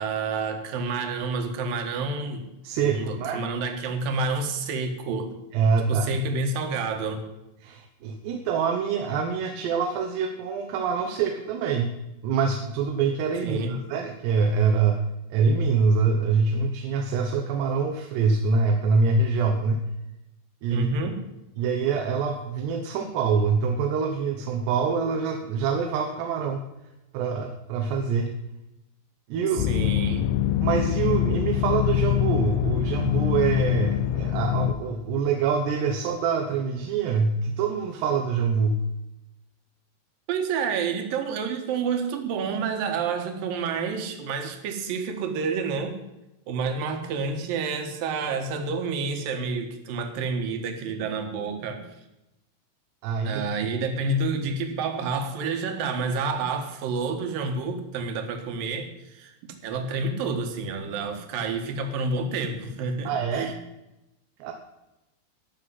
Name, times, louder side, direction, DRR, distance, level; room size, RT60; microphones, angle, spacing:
voice 1, 0.0-2.5 2.9-5.4 5.9-7.2 13.4-13.8 20.7-21.2 29.5-30.3 40.3-46.0 46.5-51.9 53.2-63.5, right 4 dB, 65° right, 5 dB, 3.0 m, -29 dB
voice 2, 2.6-3.4 5.5-6.1 7.6-11.9 12.2-15.0 15.3-19.8 20.6-20.9 21.6-26.6 27.1-28.3 29.3-29.7 30.6-38.8 53.0-53.4 63.0-63.5 64.4-64.5, right 5 dB, 85° right, 3 dB, 3.2 m, -25 dB
sound 1, 29.6-34.7, left 12 dB, 80° left, 2.6 m, -24 dB
12.5 x 6.6 x 9.6 m, 0.93 s
omnidirectional pair, 4.8 m